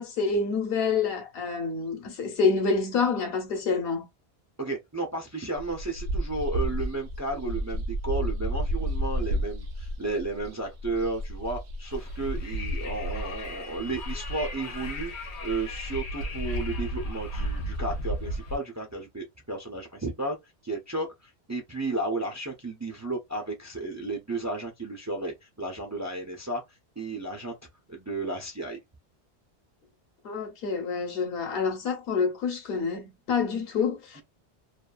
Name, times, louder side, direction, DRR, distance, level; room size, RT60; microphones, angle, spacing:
voice 1, 0.0-4.0 30.2-34.2, left 5 dB, 60° left, 1.0 m, -27 dB
voice 2, 4.6-20.4 20.6-26.6 27.0-27.5 27.9-28.8 34.2-34.3, right 2 dB, 25° right, 0.3 m, -33 dB
sound 1, 5.6-15.3 15.7-15.8 16.0-17.0, equal, 85° right, 0.9 m, -33 dB
Wind, 11.9-18.6, equal, 85° left, 1.0 m, -34 dB
2.6 x 2.3 x 2.3 m
omnidirectional pair, 1.1 m